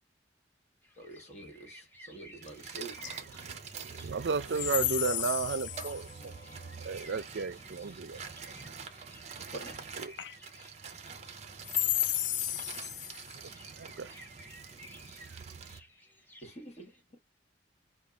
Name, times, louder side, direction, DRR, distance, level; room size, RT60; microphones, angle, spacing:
sound 1, 0.8-17.0, equal, 10° left, 0.8 m, -56 dB
voice 1, 1.0-3.0 9.4-9.8 16.4-17.2, right 2 dB, 35° left, 1.4 m, -47 dB
sound 2, 2.4-15.8, right 6 dB, 35° right, 0.7 m, -46 dB
voice 2, 3.7-6.4 6.8-8.2 10.0-10.1 13.6-14.2, right 5 dB, 70° right, 0.5 m, -34 dB
voice 3, 4.6-6.0 10.2-10.4 11.6-13.4, left 12 dB, 75° left, 0.5 m, -32 dB
Singing / Musical instrument, 5.6-8.5, left 1 dB, 50° left, 0.9 m, -57 dB
5.3 x 2.3 x 3.4 m
head